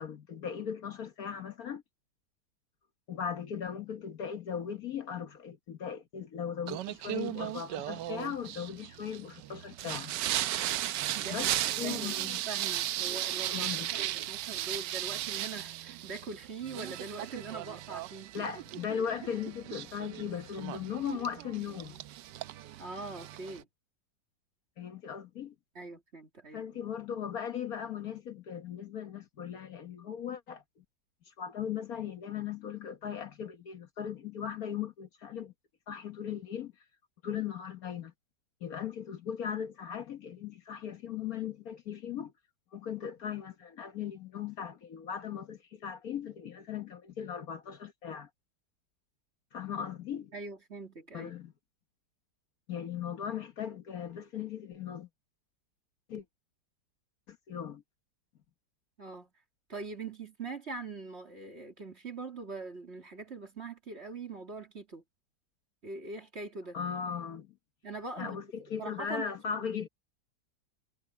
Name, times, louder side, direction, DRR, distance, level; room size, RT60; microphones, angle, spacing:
voice 1, 0.0-1.8 3.1-10.1 11.3-11.5 11.8-12.4 13.5-13.9 18.3-22.0 24.8-25.5 26.5-30.8 31.3-35.5 35.9-36.7 37.2-38.1 38.6-42.3 42.7-48.3 49.5-50.3 51.1-51.5 52.7-55.1 56.1-56.2 57.3-57.8 66.7-67.5 68.2-69.9, left 8 dB, 60° left, 1.5 m, -38 dB
Singing, 6.7-23.6, right 13 dB, 85° right, 1.3 m, -36 dB
voice 2, 11.1-11.5 11.8-13.7 14.0-18.4 22.8-23.7 25.7-26.9 50.3-51.3 59.0-59.3 59.7-65.0 65.8-66.8 67.8-68.4 68.8-69.2, right 3 dB, 35° right, 2.8 m, -42 dB
omnidirectional pair, 1.9 m